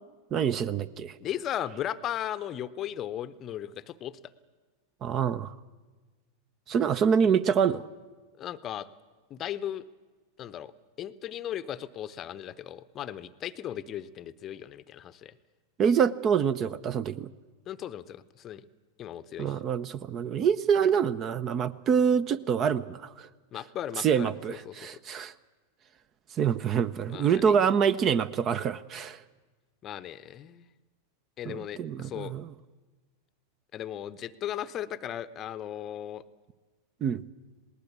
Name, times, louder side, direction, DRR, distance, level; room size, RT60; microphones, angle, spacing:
voice 1, 0.3-1.1 5.0-5.5 6.7-7.9 15.8-17.3 19.4-23.3 24.0-25.3 26.4-29.2 31.5-32.5 37.0-37.2, right 7 dB, 30° right, 17 dB, 0.7 m, -26 dB
voice 2, 1.2-4.2 8.4-8.9 9.3-9.8 10.4-10.7 11.0-15.3 17.7-18.6 19.0-19.6 23.5-24.9 27.1-27.6 29.8-30.7 31.4-32.3 33.7-36.2, left 11 dB, 30° left, 15 dB, 0.8 m, -37 dB
20.0 x 19.0 x 8.5 m, 1.3 s
figure-of-eight pair, 90°, 0 cm